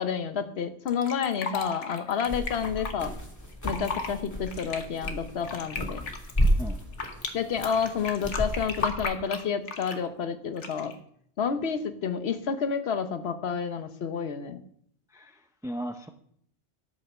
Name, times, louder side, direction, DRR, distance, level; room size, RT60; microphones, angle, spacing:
voice 1, 0.0-3.1 3.6-6.0 7.3-10.9 11.4-14.6, left 6 dB, 65° left, 9 dB, 1.1 m, -29 dB
Fill (with liquid), 0.9-2.9 3.5-4.1 4.5-7.3 7.6-10.1 10.6-10.9, left 4 dB, 90° left, 1.4 m, -35 dB
sound 1, 2.3-9.0, equal, 15° left, 1.6 m, -32 dB
voice 2, 15.1-16.1, equal, 5° right, 6 dB, 0.3 m, -37 dB
12.5 x 5.6 x 6.2 m, 0.66 s
omnidirectional pair, 1.2 m